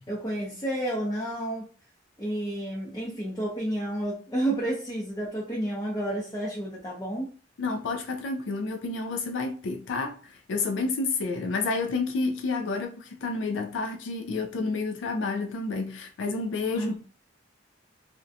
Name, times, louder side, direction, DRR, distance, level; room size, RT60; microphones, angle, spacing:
voice 1, 0.1-1.6 2.2-7.3 16.8-17.0, right 1 dB, 20° left, 0.6 m, -30 dB
voice 2, 7.6-17.0, left 3 dB, 80° left, 0.4 m, -30 dB
2.5 x 2.1 x 2.5 m
head